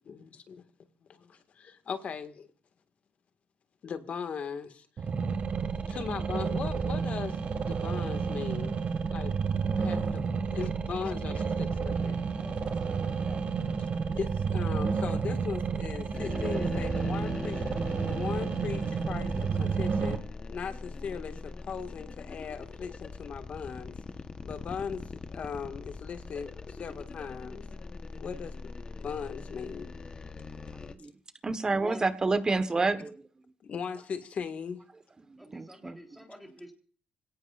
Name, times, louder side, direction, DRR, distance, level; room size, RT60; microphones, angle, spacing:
voice 1, 0.0-0.6 1.1-2.5 3.8-5.1 5.9-8.8 9.1-9.4 9.7-12.2 14.1-17.7 18.0-20.2 20.5-24.0 24.4-27.7 28.2-29.9 33.6-34.8, left 6 dB, 55° left, 8 dB, 1.9 m, -38 dB
sound 1, 5.0-20.2, right 5 dB, 50° right, 1.9 m, -31 dB
voice 2, 10.7-11.1 11.4-11.5 12.4-13.4 31.7-32.0 35.4-36.7, equal, ahead, 1 dB, 3.6 m, -48 dB
sound 2, 16.1-30.9, left 3 dB, 30° left, 1.1 m, -41 dB
voice 3, 31.4-33.2 35.5-36.0, right 3 dB, 25° right, 11 dB, 1.3 m, -28 dB
25.5 x 17.5 x 2.5 m, 0.43 s
cardioid pair, 95°, 3 cm